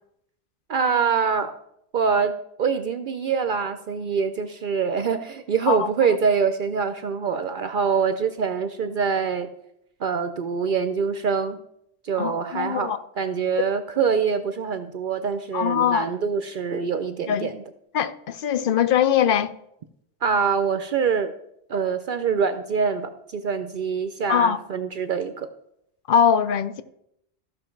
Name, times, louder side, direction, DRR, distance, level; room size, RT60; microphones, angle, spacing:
voice 1, 0.7-1.5 1.9-2.3 2.6-9.5 10.0-11.6 12.0-17.6 20.2-21.3 21.7-25.5, right 6 dB, 60° right, 0.7 m, -24 dB
voice 2, 12.2-13.0 15.5-16.1 17.3-17.5 17.9-19.5 24.3-24.6 26.1-26.8, left 8 dB, 60° left, 0.7 m, -21 dB
14.5 x 6.1 x 4.4 m
omnidirectional pair, 1.1 m